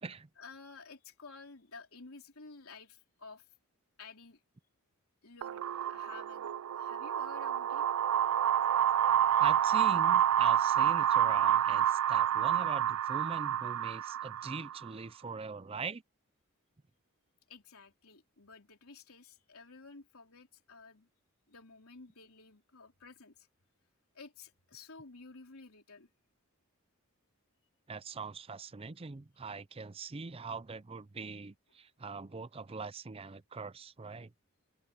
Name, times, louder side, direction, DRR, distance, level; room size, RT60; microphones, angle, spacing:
voice 1, 0.4-3.5 4.0-4.4 5.2-6.5 6.7-8.0 9.3-9.4 17.5-21.1 21.5-23.5 24.1-26.1, left 4 dB, 85° left, 3.5 m, -53 dB
sound 1, 5.4-14.9, right 10 dB, 90° right, 0.4 m, -28 dB
voice 2, 9.4-16.0 27.9-34.3, right 4 dB, 25° right, 0.5 m, -42 dB
head